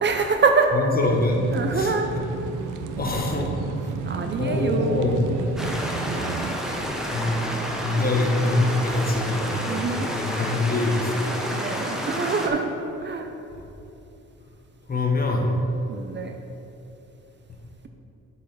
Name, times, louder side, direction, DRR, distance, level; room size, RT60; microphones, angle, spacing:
voice 1, 0.0-0.7 1.5-2.1 4.1-5.4 7.1-8.3 9.6-10.1 11.5-12.7 13.0-13.3 15.9-16.3, right 4 dB, 40° right, 5 dB, 0.5 m, -26 dB
voice 2, 0.7-1.4 1.7-2.0 3.0-3.5 4.4-5.2 6.8-9.9 10.1-11.2 14.9-15.5, left 2 dB, 30° left, 0 dB, 1.2 m, -24 dB
sound 1, 1.0-6.5, right 5 dB, 85° right, 0.6 m, -32 dB
sound 2, 5.6-12.5, equal, ahead, 0.9 m, -30 dB
8.5 x 4.7 x 4.7 m, 2.9 s
cardioid pair, 90°, 30 cm